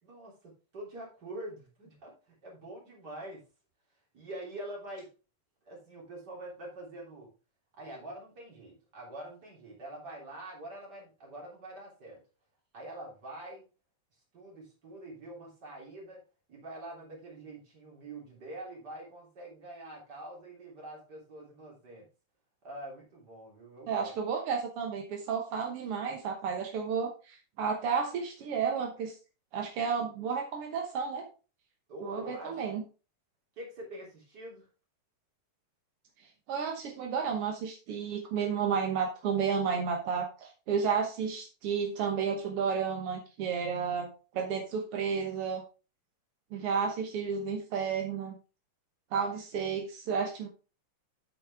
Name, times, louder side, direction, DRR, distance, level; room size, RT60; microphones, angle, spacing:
voice 1, 0.0-3.4 4.1-5.1 5.7-7.3 7.8-12.2 12.7-13.6 14.3-16.2 16.5-22.1 22.6-24.2 31.9-32.8 33.6-34.7, right 1 dB, 30° right, -3 dB, 3.6 m, -45 dB
voice 2, 23.9-29.2 29.5-31.2 32.0-32.8 36.5-44.1 44.3-45.6 46.5-48.3 49.1-50.5, right 6 dB, 65° right, 2 dB, 1.4 m, -32 dB
8.4 x 7.7 x 3.5 m, 0.34 s
omnidirectional pair, 4.1 m